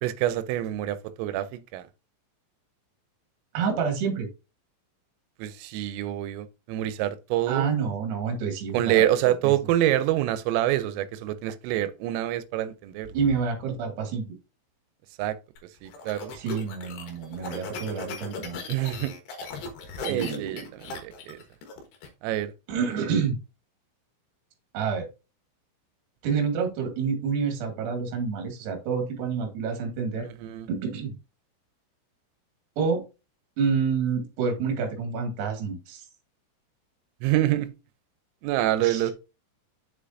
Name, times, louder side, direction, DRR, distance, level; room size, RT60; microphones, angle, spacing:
voice 1, 0.0-1.9 5.4-7.7 8.7-13.2 15.2-15.4 15.8-16.3 18.7-19.1 20.0-21.4 22.2-22.5 30.2-30.7 37.2-37.7 38.4-39.1, right 13 dB, 85° right, 3.3 m, -26 dB
voice 2, 3.5-4.3 7.5-9.5 13.1-14.3 16.4-18.6 20.0-20.6 22.7-23.4 24.7-25.1 26.2-30.3 30.7-31.1 32.8-33.0 33.6-36.1 38.8-39.0, right 6 dB, 60° right, 3.8 m, -28 dB
sound 1, 15.6-22.1, left 4 dB, 65° left, 3.2 m, -38 dB
7.3 x 6.8 x 2.6 m
omnidirectional pair, 5.8 m